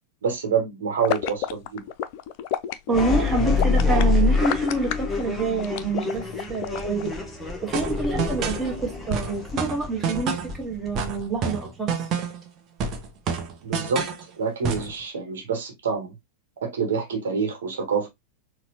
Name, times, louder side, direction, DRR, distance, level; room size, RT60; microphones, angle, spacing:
voice 1, 0.2-1.8 13.6-14.0 14.4-16.1 16.6-18.1, right 6 dB, 60° right, 1.0 m, -27 dB
sound 1, 1.0-7.1, left 10 dB, 45° left, 0.3 m, -30 dB
sound 2, 2.9-11.5, left 4 dB, 10° left, 0.8 m, -26 dB
voice 2, 2.9-7.1 7.6-12.1, right 3 dB, 15° right, 1.0 m, -27 dB
sound 3, 7.7-8.7 9.1-10.6 10.9-12.5 12.8-14.2 14.6-14.9, right 6 dB, 35° right, 0.7 m, -28 dB
4.1 x 2.1 x 2.6 m
figure-of-eight pair, 90°, 0 cm